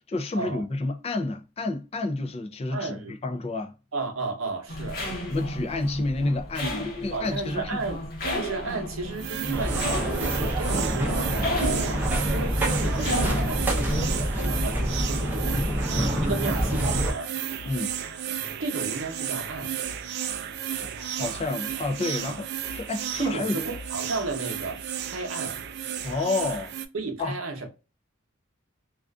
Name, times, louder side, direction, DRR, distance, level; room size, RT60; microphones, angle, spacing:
voice 1, 0.1-3.7 5.3-7.8 15.5-15.7 17.6-18.0 20.7-23.6 26.0-26.7 27.2-27.4, left 2 dB, 30° left, 0.4 m, -30 dB
voice 2, 2.7-3.1 3.9-5.0 7.1-8.0 8.3-15.6 16.2-17.3 18.6-19.7 23.2-24.8 25.1-25.6 26.9-27.7, right 3 dB, 80° right, 0.8 m, -33 dB
sound 1, 4.7-14.1, equal, 45° left, 0.9 m, -33 dB
sound 2, 9.2-26.9, right 9 dB, 55° right, 0.3 m, -33 dB
sound 3, 9.5-17.1, equal, 10° right, 0.6 m, -26 dB
2.4 x 2.4 x 2.2 m
head